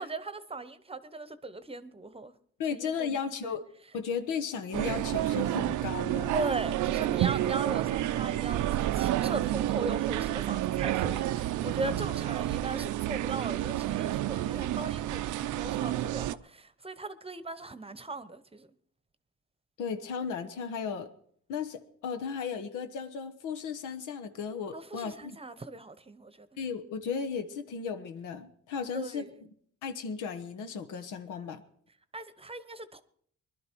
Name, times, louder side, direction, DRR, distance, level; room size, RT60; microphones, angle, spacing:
voice 1, 0.0-2.3 2.7-3.5 6.3-18.7 24.7-26.5 28.9-29.4 32.1-33.0, right 3 dB, 20° right, 0.9 m, -38 dB
voice 2, 2.6-3.6 3.9-6.3 11.8-12.0 19.8-21.1 21.5-25.4 26.6-29.3 29.8-31.6, left 6 dB, 90° left, 1.2 m, -35 dB
sound 1, 4.7-16.3, right 13 dB, 80° right, 0.6 m, -30 dB
21.5 x 11.5 x 4.6 m
cardioid pair, 90°, 30 cm